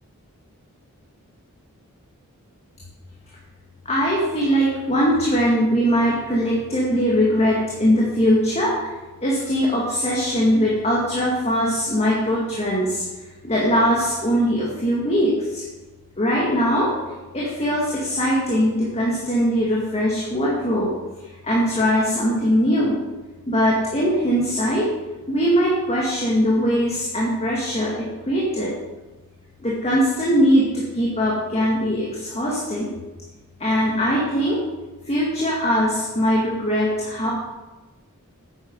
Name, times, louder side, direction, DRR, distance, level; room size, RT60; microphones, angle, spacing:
voice 1, 3.9-8.9 9.2-13.0 13.4-15.6 16.2-16.9 17.3-20.9 21.4-23.0 23.5-24.9 25.3-28.7 29.6-32.9 33.6-34.6 35.1-37.3, equal, 30° left, -4 dB, 2.0 m, -21 dB
9.7 x 9.1 x 5.4 m, 1.2 s
head